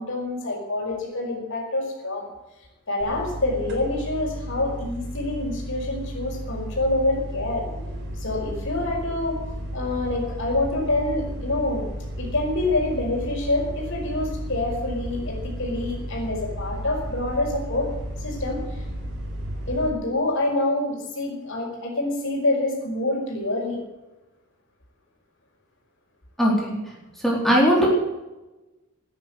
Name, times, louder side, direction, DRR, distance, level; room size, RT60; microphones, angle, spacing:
voice 1, 0.0-2.3 2.9-7.6 8.1-9.4 9.7-11.9 12.2-17.9 18.2-18.8 19.7-23.8, left 2 dB, 60° left, -1 dB, 5.2 m, -26 dB
sound 1, 3.0-19.9, equal, 55° right, 4.3 m, -33 dB
voice 2, 26.4-26.8 27.2-27.9, equal, ahead, -4 dB, 4.2 m, -19 dB
16.5 x 10.5 x 8.0 m, 1.0 s
head